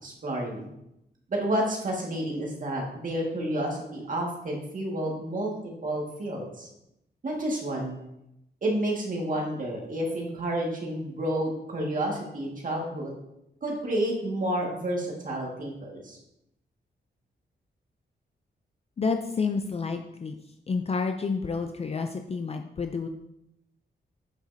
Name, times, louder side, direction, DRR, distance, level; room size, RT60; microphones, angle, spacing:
voice 1, 0.0-0.7 1.3-5.5 5.8-6.7 7.2-8.0 8.6-13.2 13.6-16.2, right 1 dB, 45° right, -1 dB, 1.8 m, -30 dB
voice 2, 19.0-20.4 20.7-23.1, left 4 dB, 35° left, 5 dB, 0.5 m, -29 dB
8.1 x 6.5 x 2.7 m, 0.84 s
wide cardioid pair, 120°, 18 cm